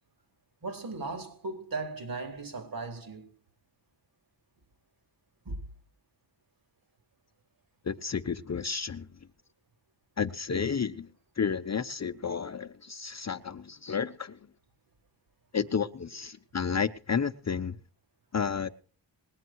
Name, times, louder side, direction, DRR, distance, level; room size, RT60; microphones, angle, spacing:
voice 1, 0.6-3.3 5.5-5.6, right 3 dB, 50° right, 4.0 m, -37 dB
voice 2, 7.8-9.1 10.2-11.1 11.4-14.4 15.5-17.8 18.3-18.7, left 6 dB, 35° left, 0.9 m, -31 dB
21.0 x 9.0 x 4.7 m
cardioid pair, 75°, 45 cm